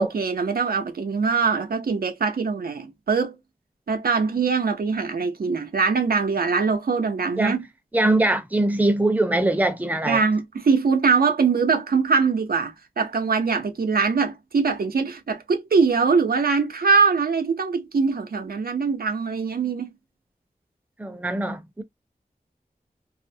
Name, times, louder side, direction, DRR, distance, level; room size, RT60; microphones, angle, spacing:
voice 1, 0.0-3.4 3.9-7.6 10.1-19.9, right 5 dB, 90° right, 0.5 m, -22 dB
voice 2, 7.9-10.2 21.0-21.8, right 1 dB, 10° right, 0.5 m, -22 dB
2.4 x 2.0 x 2.6 m
wide cardioid pair, 60°, 15 cm